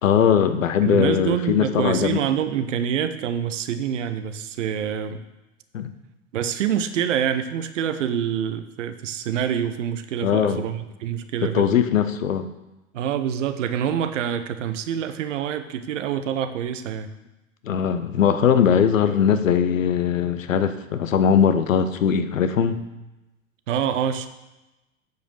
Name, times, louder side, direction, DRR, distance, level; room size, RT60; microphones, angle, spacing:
voice 1, 0.0-2.2 5.7-5.9 10.2-10.6 11.4-12.5 17.6-22.8, left 8 dB, 70° left, 10 dB, 1.0 m, -20 dB
voice 2, 0.8-5.2 6.3-11.8 12.9-17.1 23.7-24.3, right 9 dB, 65° right, 10 dB, 0.9 m, -26 dB
9.2 x 5.1 x 7.0 m, 1.0 s
figure-of-eight pair, 90°, 40 cm